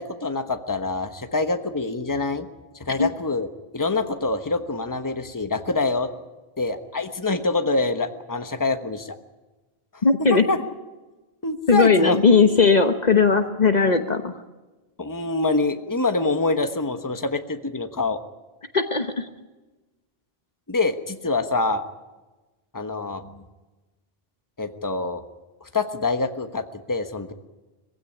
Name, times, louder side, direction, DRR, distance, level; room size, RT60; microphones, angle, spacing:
voice 1, 0.0-2.5 2.8-3.5 3.7-6.1 6.6-9.2 10.3-10.6 11.4-12.4 15.0-18.2 20.7-21.8 22.7-23.4 24.6-25.2 25.6-27.3, left 3 dB, 20° left, 7 dB, 1.3 m, -25 dB
voice 2, 10.0-10.4 11.7-14.4 18.7-19.3, left 4 dB, 45° left, 7 dB, 1.2 m, -18 dB
22.0 x 16.0 x 9.8 m, 1.2 s
omnidirectional pair, 1.0 m